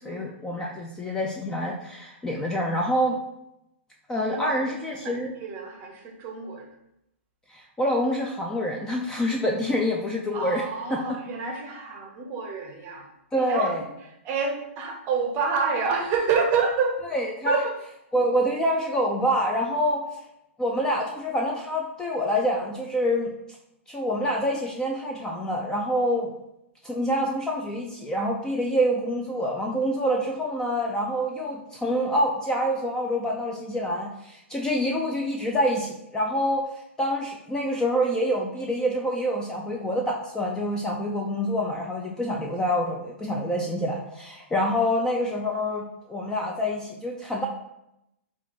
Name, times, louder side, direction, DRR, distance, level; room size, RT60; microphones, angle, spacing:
voice 1, 0.0-3.2 4.1-5.3 7.5-10.6 10.9-11.1 13.3-13.8 17.1-17.6 18.1-20.1 20.6-23.3 23.9-26.3 26.8-36.7 37.0-47.5, equal, 10° left, -1 dB, 0.3 m, -26 dB
voice 2, 4.2-6.7 10.3-13.1 13.4-13.8 14.2-17.0 17.4-17.7, right 5 dB, 30° right, 3 dB, 0.7 m, -28 dB
4.3 x 2.4 x 4.0 m, 0.83 s
hypercardioid pair, 145°, 7 cm